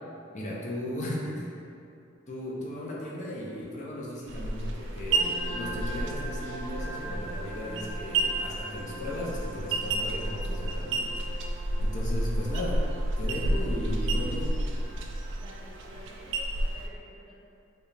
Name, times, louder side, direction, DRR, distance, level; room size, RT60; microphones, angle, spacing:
voice 1, 0.3-1.5 2.3-11.2 11.8-12.8 13.2-14.5, left 1 dB, 40° left, -4 dB, 0.5 m, -36 dB
sound 1, 4.3-16.9, right 1 dB, 65° right, 0.3 m, -31 dB
sound 2, 5.1-15.9, right 2 dB, 10° left, 1.4 m, -44 dB
voice 2, 15.2-17.4, right 1 dB, 25° right, -7 dB, 0.7 m, -51 dB
4.7 x 2.3 x 3.2 m, 2.6 s
head